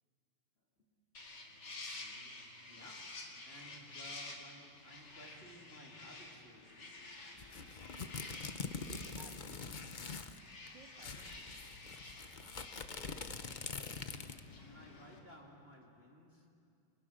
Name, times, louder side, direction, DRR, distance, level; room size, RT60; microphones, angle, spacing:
sound 1, 1.1-15.2, left 2 dB, 55° left, 3.0 m, -51 dB
voice 1, 1.9-7.1 13.6-14.3 14.6-16.5, equal, 25° left, -1 dB, 3.0 m, -58 dB
sound 2, 7.4-10.4 10.7-10.8 11.0-14.5, left 4 dB, 85° left, 0.4 m, -44 dB
voice 2, 8.7-9.8 10.6-11.7, right 2 dB, 55° right, 2 dB, 2.4 m, -59 dB
29.5 x 26.0 x 6.5 m, 2.5 s
omnidirectional pair, 2.3 m